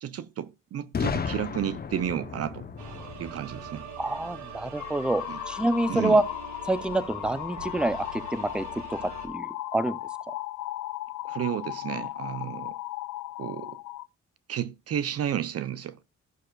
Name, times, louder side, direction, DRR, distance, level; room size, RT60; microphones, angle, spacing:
voice 1, 0.0-2.7 3.2-3.9 5.3-5.4 5.9-6.2 11.2-12.8 13.4-13.8 14.5-16.0, right 10 dB, 50° right, 0.6 m, -32 dB
Boom, 0.9-4.8, left 6 dB, 30° left, 0.9 m, -34 dB
sound 1, 2.8-9.3, right 5 dB, 70° right, 1.6 m, -43 dB
voice 2, 4.0-6.2 6.6-10.0 10.3-10.4, right 2 dB, 5° right, 0.6 m, -27 dB
sound 2, 4.7-14.1, left 17 dB, 75° left, 0.5 m, -36 dB
14.5 x 6.4 x 2.4 m
cardioid pair, 90°, 30 cm